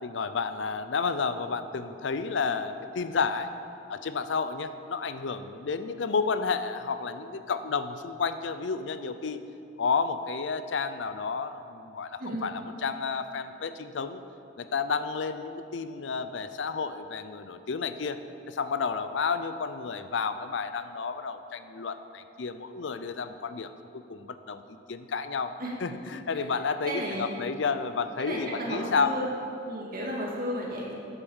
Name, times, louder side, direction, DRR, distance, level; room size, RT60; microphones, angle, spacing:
voice 1, 0.0-3.5 3.9-9.4 9.8-14.2 14.6-18.2 18.5-25.5 25.8-29.1, left 5 dB, 75° left, 11 dB, 0.5 m, -31 dB
voice 2, 26.9-27.4 28.2-29.3 29.6-30.9, equal, 50° right, -4 dB, 2.4 m, -33 dB
9.0 x 8.1 x 7.2 m, 2.6 s
head